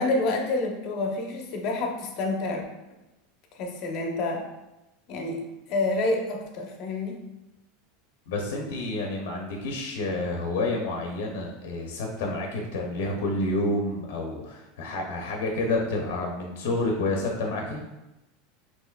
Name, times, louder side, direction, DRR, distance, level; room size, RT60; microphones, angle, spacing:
voice 1, 0.0-2.6 3.5-4.5 5.1-5.4 5.7-7.2, left 2 dB, 45° left, 2 dB, 0.7 m, -28 dB
voice 2, 8.3-17.9, left 2 dB, 85° left, 1 dB, 0.6 m, -29 dB
5.5 x 2.9 x 2.3 m, 0.97 s
supercardioid pair, 150°, 0 cm